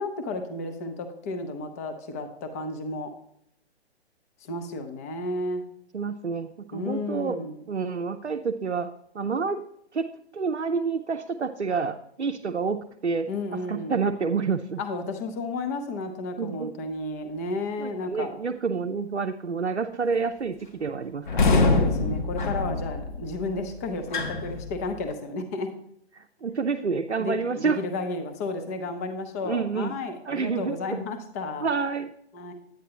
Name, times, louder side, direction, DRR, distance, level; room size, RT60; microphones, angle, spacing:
voice 1, 0.0-3.1 4.4-5.6 6.7-7.6 13.3-14.1 14.8-18.3 21.6-25.7 27.2-31.7 32.3-32.5, left 2 dB, 15° left, 6 dB, 0.5 m, -32 dB
voice 2, 5.9-7.4 7.7-9.6 9.9-13.3 13.7-14.8 16.4-16.7 17.8-21.7 26.2-27.8 29.4-30.0 30.3-31.0 31.6-32.1, right 5 dB, 85° right, 4 dB, 0.6 m, -28 dB
sound 1, 21.3-25.1, left 3 dB, 45° left, 1.0 m, -25 dB
9.9 x 8.9 x 2.9 m, 0.73 s
figure-of-eight pair, 125°, 33 cm